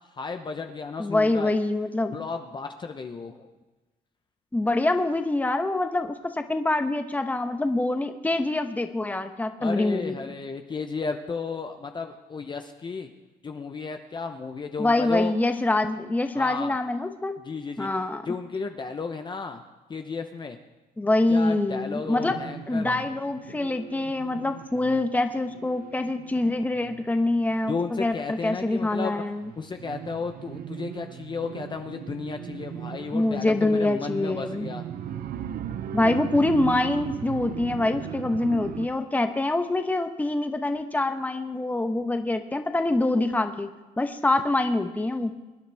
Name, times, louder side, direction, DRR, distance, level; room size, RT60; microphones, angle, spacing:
voice 1, 0.1-1.5 2.1-3.5 9.6-13.1 13.4-15.4 16.3-16.8 17.4-17.9 18.2-19.6 19.9-20.6 21.3-23.0 27.7-29.2 29.6-34.9, left 4 dB, 25° left, 5 dB, 0.9 m, -33 dB
voice 2, 1.0-2.1 4.5-10.1 14.8-17.4 17.8-18.2 21.0-22.4 22.7-29.4 33.1-34.7 35.9-43.7 44.0-45.3, left 2 dB, 10° left, 7 dB, 1.0 m, -25 dB
sound 1, 22.1-29.0 29.3-38.9, right 9 dB, 60° right, 0.7 m, -38 dB
24.0 x 10.5 x 3.5 m, 1.2 s
cardioid pair, 110°, 17 cm